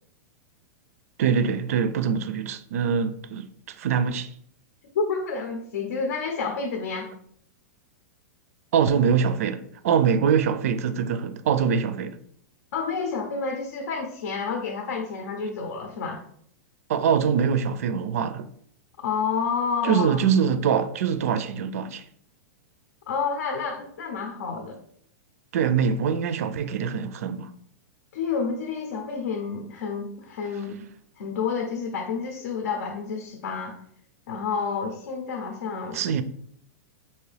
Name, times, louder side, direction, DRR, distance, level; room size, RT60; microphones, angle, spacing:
voice 1, 1.2-4.3 8.7-12.2 16.9-18.5 19.8-22.0 25.5-27.5 35.9-36.2, right 7 dB, 55° right, 0.4 m, -24 dB
voice 2, 4.9-7.1 12.7-16.2 19.0-20.2 23.1-24.8 28.1-30.8 31.2-33.8 34.3-36.0, left 5 dB, 75° left, 0.7 m, -29 dB
4.5 x 2.7 x 3.3 m
supercardioid pair, 180°, 9 cm